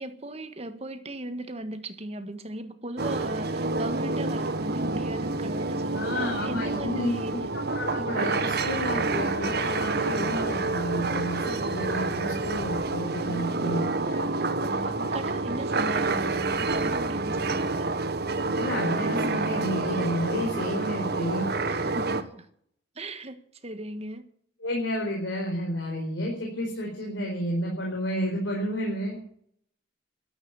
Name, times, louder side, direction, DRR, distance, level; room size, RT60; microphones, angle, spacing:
voice 1, 0.0-7.4 13.2-13.9 14.2-17.9 21.7-22.5 22.9-24.3, right 1 dB, 35° right, 1.4 m, -38 dB
sound 1, 3.0-22.2, right 3 dB, 55° right, 1.2 m, -28 dB
voice 2, 5.9-7.1 7.7-14.2 18.5-21.5 24.6-29.2, equal, 75° left, 4.8 m, -31 dB
13.0 x 11.5 x 8.8 m
head